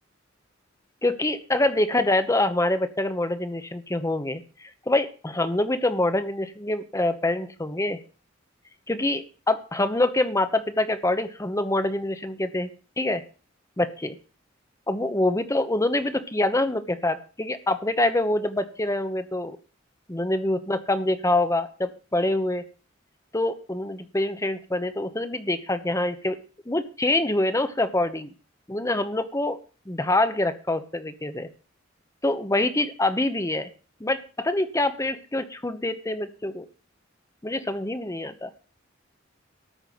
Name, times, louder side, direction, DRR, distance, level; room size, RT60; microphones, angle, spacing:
voice 1, 1.0-8.0 8.9-12.7 13.0-13.2 13.8-14.1 14.9-19.6 20.1-22.6 23.3-26.4 26.6-28.3 28.7-29.6 29.9-31.5 32.2-33.7 34.0-36.6 37.4-38.5, left 2 dB, 15° left, 11 dB, 1.0 m, -25 dB
13.5 x 5.7 x 9.4 m, 0.38 s
head